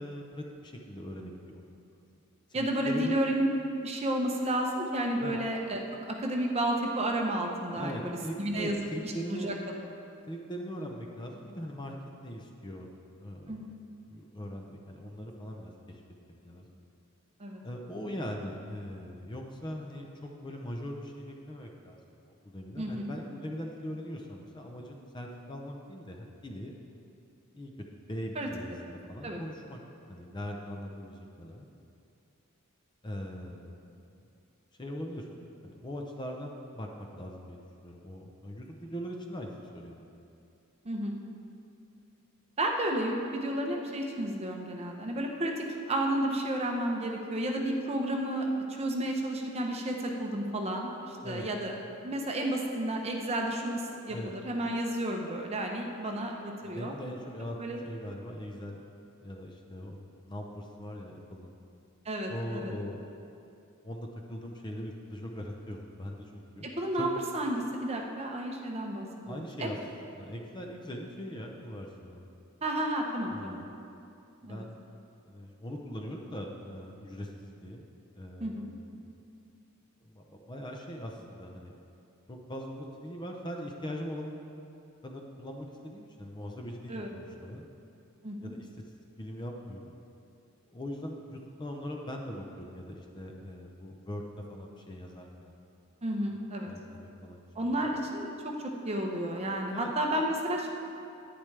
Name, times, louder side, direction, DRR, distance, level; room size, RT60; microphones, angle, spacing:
voice 1, 0.0-2.0 2.5-3.2 5.2-5.4 7.8-9.5 10.3-11.9 12.2-12.9 13.2-13.7 14.1-16.0 16.4-16.8 17.6-22.0 22.4-26.7 27.5-29.8 30.1-31.7 33.0-33.9 34.8-35.3 35.6-40.1 51.2-51.5 54.1-54.3 56.6-57.6 57.8-58.8 59.2-61.5 62.3-63.0 63.8-66.7 67.0-67.1 69.3-69.8 70.1-72.3 73.3-73.7 74.4-74.7 75.3-77.8 78.1-78.9 80.0-81.7 82.3-84.3 85.0-87.7 88.4-88.7 89.2-89.9 90.7-94.2 94.5-95.5 96.7-97.8 99.7-99.9, equal, 20° left, 1 dB, 0.6 m, -41 dB
voice 2, 2.5-3.5 3.8-8.8 9.0-9.5 13.5-13.7 17.4-17.6 22.8-23.1 28.3-28.5 29.2-29.4 40.8-41.2 42.6-48.5 48.8-51.7 52.0-56.9 57.6-57.8 62.0-62.7 66.6-69.7 72.6-73.6 74.4-74.7 78.4-78.7 86.9-87.1 88.2-88.5 96.0-96.7 97.5-98.5 98.8-100.7, right 1 dB, 30° right, 1 dB, 0.8 m, -32 dB
10.5 x 9.7 x 3.3 m, 2.7 s
head